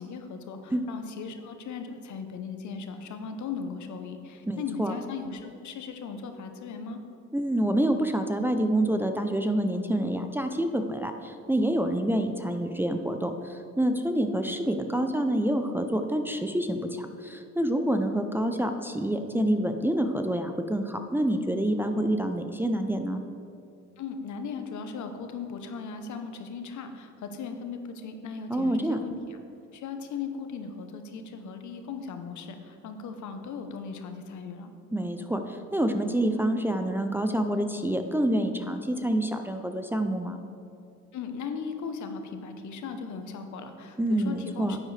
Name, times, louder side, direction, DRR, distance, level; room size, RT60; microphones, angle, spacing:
voice 1, 0.0-7.0 24.0-29.4 29.7-34.7 41.1-44.8, left 5 dB, 70° left, 7 dB, 0.9 m, -38 dB
voice 2, 4.5-5.0 7.3-23.2 28.5-29.0 34.9-40.4 44.0-44.8, right 1 dB, 5° right, 5 dB, 0.5 m, -27 dB
9.5 x 8.6 x 3.3 m, 2.6 s
cardioid pair, 90°, 30 cm